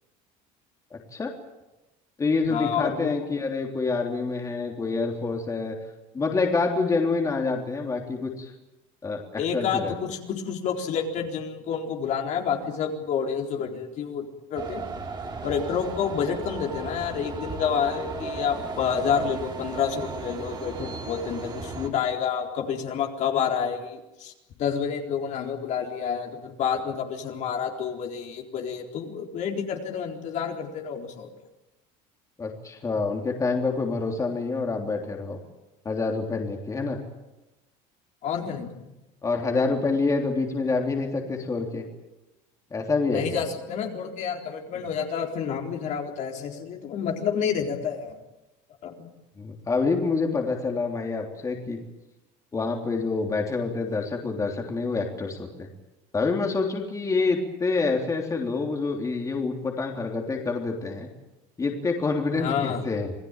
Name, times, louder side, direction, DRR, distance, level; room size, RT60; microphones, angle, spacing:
voice 1, 0.9-1.3 2.2-5.8 6.1-8.5 9.0-9.9 32.4-35.4 35.9-37.0 39.2-41.8 42.7-43.4 49.4-51.8 52.5-55.7 56.1-61.1 61.6-63.1, left 4 dB, 20° left, 2 dB, 3.4 m, -27 dB
voice 2, 2.5-3.1 9.4-14.3 14.5-14.8 15.4-24.3 24.6-31.3 38.2-38.7 43.1-48.2 48.8-49.1 62.3-62.8, left 7 dB, 50° left, 2 dB, 4.1 m, -29 dB
sound 1, 14.6-21.9, right 4 dB, 30° right, 3.9 m, -35 dB
27.5 x 18.0 x 9.0 m, 1.0 s
cardioid pair, 130°, 15 cm